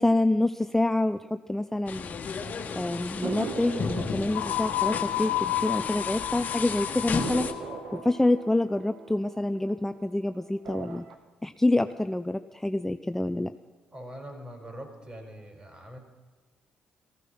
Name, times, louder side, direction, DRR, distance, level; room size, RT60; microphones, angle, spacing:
voice 1, 0.0-2.2 2.7-7.5 7.9-11.1 11.4-13.5, left 2 dB, 10° left, 10 dB, 0.6 m, -27 dB
sound 1, 1.9-7.5, left 6 dB, 55° left, 1.5 m, -34 dB
sound 2, 3.2-6.3 6.6-6.7 7.2-10.1 10.5-11.1, right 5 dB, 70° right, 1.6 m, -39 dB
sound 3, 4.3-8.0, left 14 dB, 85° left, 1.1 m, -31 dB
voice 2, 13.9-16.0, equal, 25° right, 4 dB, 5.4 m, -43 dB
15.5 x 15.0 x 5.9 m, 1.4 s
supercardioid pair, 60°, 3 cm